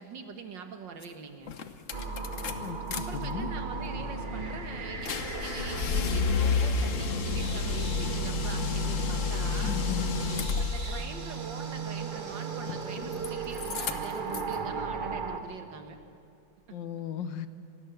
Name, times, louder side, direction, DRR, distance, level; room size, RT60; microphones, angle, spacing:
voice 1, 0.0-1.5 2.9-9.8 10.6-16.0 16.7-16.8, right 5 dB, 85° right, 6 dB, 2.2 m, -43 dB
sound 1, 1.0-1.1 1.5-3.0 3.3-11.1 12.6-13.3 13.5-14.5, left 5 dB, 50° left, 1.2 m, -31 dB
sound 2, 1.9-15.4, right 5 dB, 35° right, 1.0 m, -36 dB
voice 2, 3.1-3.5 9.6-10.1 16.7-17.5, left 8 dB, 85° left, 12 dB, 1.6 m, -36 dB
25.5 x 18.5 x 7.0 m, 2.4 s
omnidirectional pair, 1.9 m